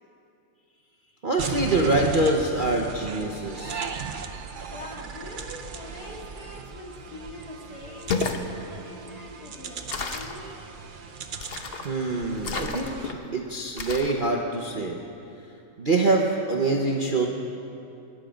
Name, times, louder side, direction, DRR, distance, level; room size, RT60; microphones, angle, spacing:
voice 1, 1.2-3.9 11.8-15.0 15.8-17.3, right 2 dB, 40° right, -1 dB, 0.8 m, -25 dB
sound 1, 1.4-13.1, right 5 dB, 75° right, 0.4 m, -37 dB
voice 2, 4.7-10.7, left 2 dB, 60° left, -1 dB, 2.5 m, -43 dB
sound 2, 7.9-8.4 9.9-10.4 11.4-11.9 12.4-13.1 13.8-14.2, left 4 dB, 45° left, 0.8 m, -31 dB
21.0 x 11.0 x 5.1 m, 2.7 s
omnidirectional pair, 1.9 m